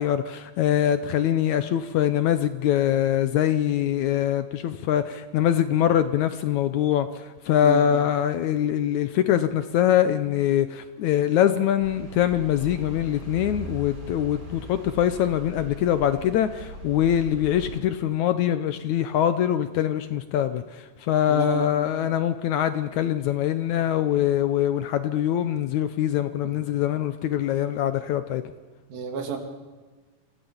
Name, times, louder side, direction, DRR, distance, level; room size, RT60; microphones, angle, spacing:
voice 1, 0.0-28.4, left 10 dB, 75° left, 11 dB, 1.8 m, -23 dB
voice 2, 7.6-8.0 21.3-21.7 26.4-26.5 28.9-29.4, right 5 dB, 80° right, 4 dB, 4.2 m, -32 dB
sound 1, 11.8-17.8, right 1 dB, 25° right, 3.7 m, -40 dB
25.5 x 16.5 x 7.2 m, 1.4 s
omnidirectional pair, 4.1 m